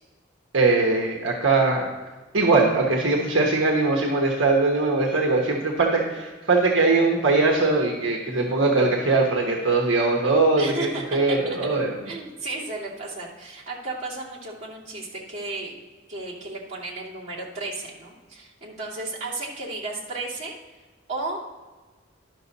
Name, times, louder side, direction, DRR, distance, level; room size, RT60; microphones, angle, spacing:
voice 1, 0.5-1.9 2.3-11.9, right 3 dB, 70° right, 0 dB, 1.2 m, -21 dB
voice 2, 10.6-15.7 16.1-20.5 21.1-21.4, right 2 dB, 35° right, -7 dB, 2.6 m, -34 dB
11.5 x 6.3 x 4.1 m, 1.3 s
head